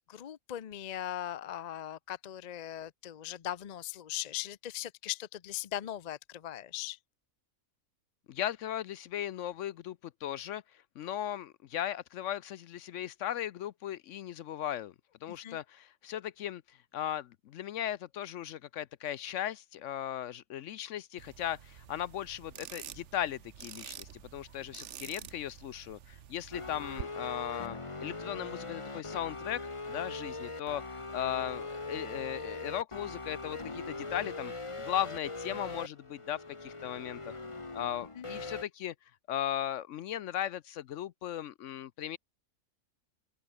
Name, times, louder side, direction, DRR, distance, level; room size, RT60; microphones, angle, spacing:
voice 1, 0.1-7.0 15.3-15.6 38.1-38.3, left 12 dB, 50° left, 0.5 m, -39 dB
voice 2, 8.3-10.6 11.0-14.9 15.2-16.6 16.9-29.6 29.9-34.5 34.8-37.4 37.7-38.9 39.3-42.2, left 11 dB, 70° left, 0.9 m, -37 dB
sound 1, 21.2-27.0, right 10 dB, 60° right, 1.1 m, -48 dB
sound 2, 26.5-38.6, left 3 dB, 20° left, 1.5 m, -41 dB
open air
omnidirectional pair, 1.5 m